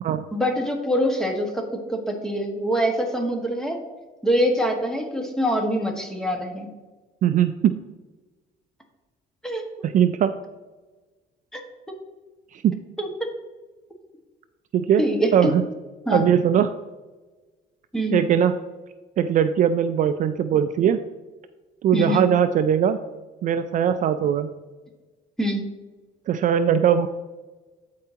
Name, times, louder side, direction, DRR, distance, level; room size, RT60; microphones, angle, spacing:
voice 1, 0.3-3.8 4.2-6.7 9.4-9.6 11.5-11.6 13.0-13.3 15.0-15.5 16.1-16.2 17.9-18.2 21.9-22.2 25.4-25.6, equal, 5° left, 2 dB, 1.5 m, -24 dB
voice 2, 7.2-7.8 9.8-10.4 12.5-12.8 14.7-15.0 15.3-15.6 16.1-16.7 18.1-18.5 19.2-21.0 21.8-23.0 23.4-24.5 26.3-27.1, right 9 dB, 50° right, 10 dB, 0.4 m, -20 dB
13.5 x 4.7 x 2.8 m, 1.2 s
cardioid pair, 110°, 17 cm